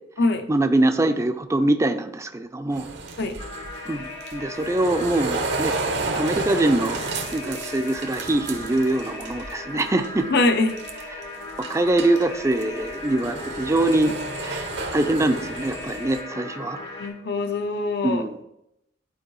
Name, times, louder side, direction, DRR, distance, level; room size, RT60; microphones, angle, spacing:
voice 1, 0.5-2.9 3.8-7.0 7.3-10.3 11.6-16.8 18.0-18.4, right 2 dB, 15° right, 8 dB, 0.4 m, -23 dB
sound 1, 2.7-9.5 9.8-10.2 10.7-11.2 11.6-16.2, right 3 dB, 70° right, 0.8 m, -32 dB
sound 2, 3.4-17.1, left 2 dB, 85° left, 2.1 m, -37 dB
voice 2, 10.3-10.8 16.7-18.3, left 2 dB, 60° left, 7 dB, 0.6 m, -23 dB
11.0 x 4.5 x 3.1 m, 0.82 s
head